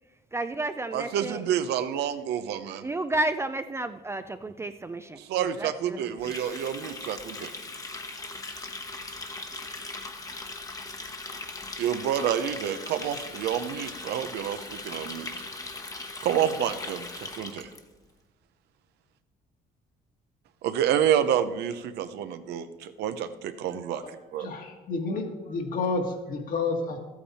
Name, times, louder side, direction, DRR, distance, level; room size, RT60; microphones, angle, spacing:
voice 1, 0.3-1.4 2.8-5.2 5.6-5.7, right 2 dB, 15° right, 9 dB, 0.4 m, -31 dB
voice 2, 0.9-2.8 5.2-7.5 11.8-15.3 16.2-17.7 20.6-24.0 24.3-24.5, right 9 dB, 80° right, 10 dB, 0.8 m, -28 dB
Water tap faucet, 6.2-17.8, left 3 dB, 20° left, 1.1 m, -39 dB
voice 3, 24.0-27.0, left 3 dB, 55° left, 3 dB, 1.8 m, -30 dB
13.0 x 8.6 x 4.3 m, 1.2 s
cardioid pair, 110°, 17 cm